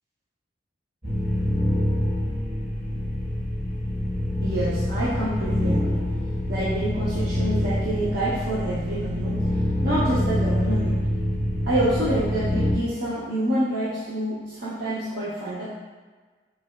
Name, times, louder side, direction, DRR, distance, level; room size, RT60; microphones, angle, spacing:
sound 1, 1.0-12.7, left 1 dB, 45° right, 1.4 m, -26 dB
voice 1, 4.4-6.1 6.5-9.5 9.8-11.1 11.7-15.7, right 1 dB, 65° right, -10 dB, 0.7 m, -27 dB
5.6 x 2.2 x 2.2 m, 1.4 s
head